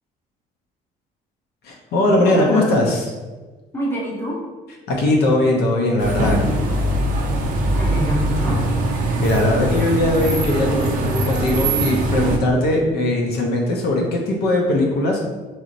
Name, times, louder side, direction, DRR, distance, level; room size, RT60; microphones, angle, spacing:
voice 1, 1.6-3.0 4.9-6.4 9.2-15.2, left 1 dB, 70° left, -1 dB, 0.5 m, -19 dB
voice 2, 2.2-2.7 3.7-4.4 7.7-8.6, equal, 15° left, -4 dB, 0.7 m, -26 dB
sound 1, 6.0-12.4, right 1 dB, 55° right, 0.4 m, -21 dB
2.8 x 2.0 x 2.5 m, 1.3 s
cardioid pair, 110°, 17 cm